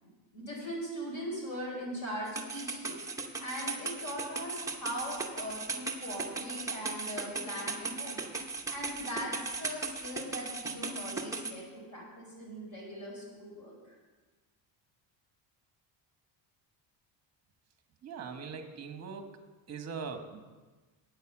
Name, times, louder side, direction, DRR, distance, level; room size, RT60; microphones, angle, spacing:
voice 1, 0.0-3.0 3.4-8.2 8.7-13.9, equal, 35° left, -2 dB, 4.7 m, -40 dB
sound 1, 2.3-11.5, right 4 dB, 5° right, 0.8 m, -37 dB
voice 2, 18.0-19.3 19.7-20.4, right 5 dB, 30° right, 6 dB, 1.2 m, -41 dB
9.5 x 9.4 x 7.2 m, 1.3 s
cardioid pair, 165°, 49 cm